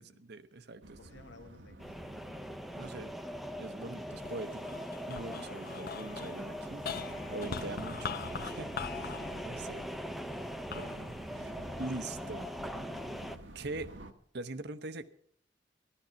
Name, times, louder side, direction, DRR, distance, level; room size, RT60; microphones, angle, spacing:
voice 1, 0.0-1.0 2.8-3.1 3.6-4.8 5.1-9.1 9.4-9.8 10.7-11.5 11.8-12.5 12.7-12.9 13.5-13.9 14.3-15.1, right 2 dB, 65° right, 11 dB, 0.9 m, -43 dB
sound 1, 0.8-14.1, right 1 dB, 85° right, 1.3 m, -52 dB
voice 2, 1.0-1.9 5.6-5.7, left 2 dB, 85° left, 6 dB, 1.7 m, -57 dB
sound 2, 1.8-13.4, equal, ahead, 0.5 m, -41 dB
sound 3, 4.2-12.6 13.2-14.0, left 5 dB, 55° left, 0.8 m, -44 dB
14.5 x 12.0 x 5.8 m, 0.67 s
head